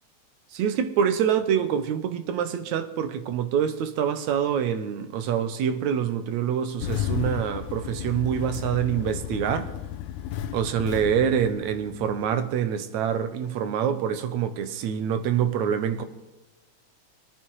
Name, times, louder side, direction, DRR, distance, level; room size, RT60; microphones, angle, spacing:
voice 1, 0.5-9.7 10.5-16.0, right 8 dB, 75° right, 2.2 m, -26 dB
Engine starting, 6.8-12.3, left 11 dB, 80° left, 2.1 m, -33 dB
25.5 x 9.3 x 4.7 m
omnidirectional pair, 3.4 m